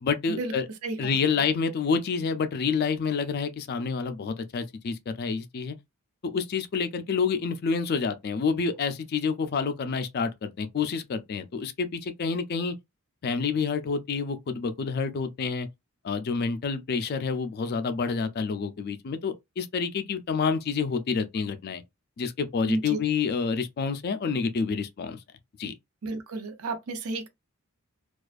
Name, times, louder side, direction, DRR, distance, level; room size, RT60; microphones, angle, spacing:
voice 1, 0.0-0.7 1.0-5.8 6.2-12.7 13.2-15.7 16.0-21.8 22.2-25.2 25.6-25.7, left 5 dB, 45° left, 0.3 m, -28 dB
voice 2, 0.8-1.2 22.6-23.0 26.0-27.3, right 3 dB, 70° right, 0.5 m, -32 dB
2.4 x 2.3 x 2.3 m
head